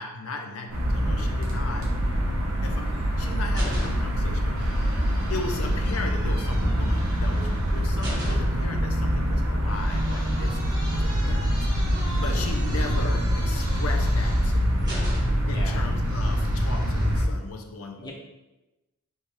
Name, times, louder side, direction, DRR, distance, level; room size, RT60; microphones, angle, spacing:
voice 1, 0.0-1.9 2.6-2.9 3.2-5.0 5.3-11.5 11.9-15.0 15.5-18.1, left 3 dB, 75° left, 4 dB, 0.5 m, -37 dB
sound 1, 0.7-17.2, equal, 75° right, 1.1 m, -25 dB
sound 2, 2.9-4.3 4.6-8.7 9.7-15.6 16.0-17.1, equal, 20° right, 1.5 m, -39 dB
voice 2, 15.4-15.8 18.0-18.1, left 1 dB, 20° left, -3 dB, 0.7 m, -38 dB
3.3 x 3.3 x 4.5 m, 1.0 s
head